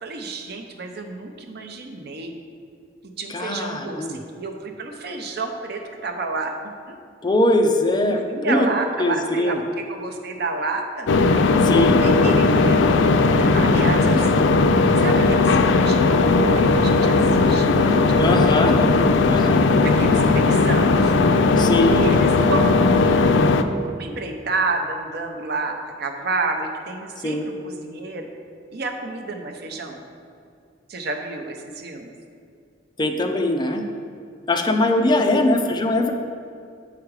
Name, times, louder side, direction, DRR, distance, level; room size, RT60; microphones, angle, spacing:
voice 1, 0.0-2.4 3.2-6.5 6.9-7.0 8.1-11.1 12.0-13.0 13.4-14.5 15.0-18.6 19.8-21.1 21.9-23.4 23.8-28.3 28.7-30.0 30.9-32.1 35.0-35.4, right 3 dB, 60° right, 3 dB, 0.7 m, -30 dB
voice 2, 3.3-4.2 7.2-8.7 9.0-9.6 11.3-12.0 18.2-18.8 19.3-19.6 21.6-22.0 27.2-27.4 33.0-33.8 34.5-36.1, left 1 dB, 25° left, 4 dB, 0.5 m, -21 dB
sound 1, 11.1-23.6, left 3 dB, 80° left, 0.4 m, -17 dB
7.3 x 4.9 x 4.7 m, 2.4 s
head